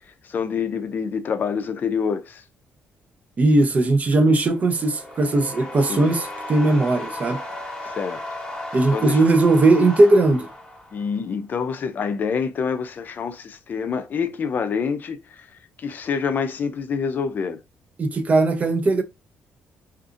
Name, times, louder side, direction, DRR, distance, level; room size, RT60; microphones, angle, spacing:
voice 1, 0.2-2.4 5.9-6.1 7.8-8.2 8.9-9.2 10.9-15.5 15.8-17.6, left 6 dB, 45° left, 0.5 m, -26 dB
voice 2, 3.4-7.4 8.7-10.5 18.0-19.0, right 2 dB, 35° right, 0.5 m, -18 dB
sound 1, 4.2-11.3, left 1 dB, 15° left, 1.0 m, -35 dB
2.6 x 2.5 x 2.5 m
cardioid pair, 115°, 4 cm